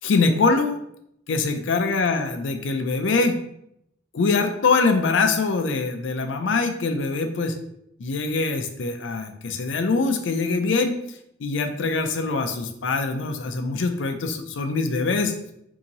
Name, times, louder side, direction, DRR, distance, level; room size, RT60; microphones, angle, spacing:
voice 1, 0.0-0.8 1.3-3.4 4.1-7.6 8.0-11.0 11.4-15.3, left 4 dB, 85° left, 7 dB, 0.5 m, -23 dB
2.8 x 2.7 x 3.9 m, 0.77 s
head